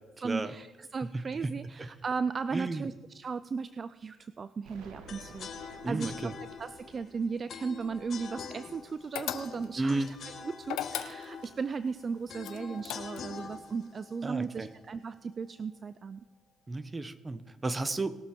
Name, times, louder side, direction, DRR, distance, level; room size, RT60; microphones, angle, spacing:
voice 1, 0.2-6.3 6.6-16.2, right 5 dB, 40° right, 14 dB, 0.4 m, -36 dB
voice 2, 1.1-1.9 2.5-2.8 5.8-6.3 9.8-10.1 14.2-14.7 16.7-18.1, right 2 dB, 25° right, 12 dB, 1.0 m, -33 dB
Explosion, 4.7-9.5, right 3 dB, 85° right, 1.7 m, -54 dB
sound 1, 5.1-15.2, left 5 dB, 55° left, 1.9 m, -45 dB
sound 2, 9.1-9.8 10.6-11.5 12.4-13.4, left 12 dB, 85° left, 0.8 m, -37 dB
20.5 x 7.1 x 4.5 m, 1.2 s
cardioid pair, 85°, 0 cm